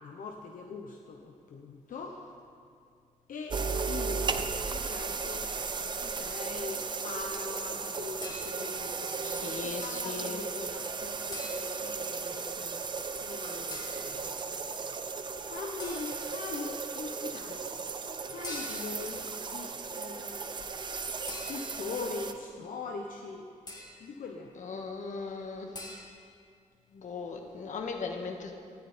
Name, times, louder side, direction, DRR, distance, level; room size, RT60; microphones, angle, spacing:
voice 1, 0.0-2.2 3.3-3.6 3.9-12.9 13.2-14.3 14.7-14.9 15.4-17.7 18.0-20.7 21.3-23.5 24.0-24.8, left 4 dB, 85° left, 1 dB, 1.1 m, -42 dB
sound 1, 3.5-22.3, right 4 dB, 35° right, 0.7 m, -36 dB
sound 2, 8.2-8.9 11.3-12.0 13.7-14.1 15.8-16.4 18.4-19.1 21.3-22.0 23.7-24.1 25.7-26.1, left 2 dB, 30° left, 2.1 m, -44 dB
voice 2, 9.2-10.4 24.6-25.7 26.9-28.5, left 4 dB, 65° left, 3 dB, 1.7 m, -38 dB
18.5 x 14.0 x 4.4 m, 2.3 s
wide cardioid pair, 165°, 14 cm